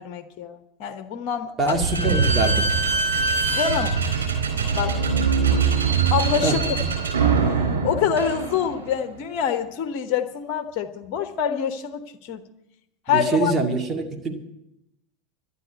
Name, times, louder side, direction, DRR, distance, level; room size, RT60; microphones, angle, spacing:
voice 1, 0.0-1.7 3.5-4.0 4.7-5.0 6.1-6.6 7.4-12.4 13.1-13.5, left 8 dB, 50° left, 7 dB, 1.0 m, -26 dB
voice 2, 1.6-2.7 6.4-6.6 13.1-14.4, right 3 dB, 30° right, 3 dB, 2.2 m, -24 dB
Slam / Squeak, 1.7-9.0, right 5 dB, 80° right, 4.0 m, -22 dB
12.5 x 9.5 x 8.1 m, 0.85 s
figure-of-eight pair, 80°, 0 cm